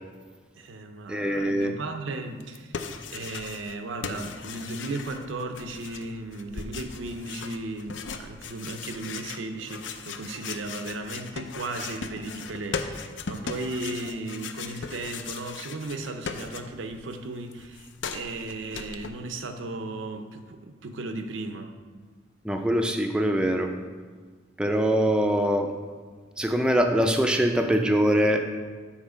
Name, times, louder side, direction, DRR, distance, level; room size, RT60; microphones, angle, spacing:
voice 1, 0.5-21.7, right 2 dB, 90° right, 0.6 m, -36 dB
voice 2, 1.1-1.7 22.4-23.7 24.6-25.7 26.4-28.4, equal, 5° right, 0.3 m, -23 dB
sound 1, 2.4-3.8 4.0-17.0 17.2-19.1, left 5 dB, 75° left, 0.5 m, -38 dB
7.2 x 4.3 x 5.0 m
head